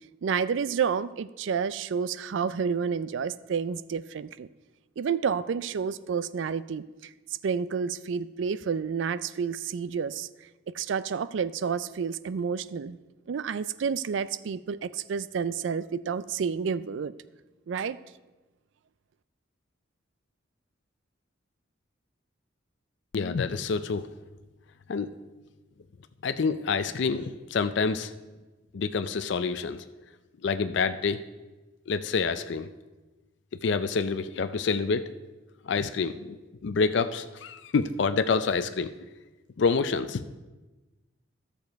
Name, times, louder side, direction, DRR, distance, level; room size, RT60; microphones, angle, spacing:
voice 1, 0.2-4.5 5.0-6.8 7.4-10.3 10.7-13.0 13.3-17.1 17.7-18.0, right 6 dB, 65° right, 17 dB, 0.4 m, -30 dB
voice 2, 23.1-24.1 24.9-25.1 26.2-28.1 28.7-29.8 30.4-31.2 31.9-32.7 33.6-35.0 35.7-36.4 36.6-38.9 39.6-40.2, left 5 dB, 60° left, 11 dB, 0.4 m, -27 dB
12.0 x 6.9 x 4.6 m, 1.1 s
head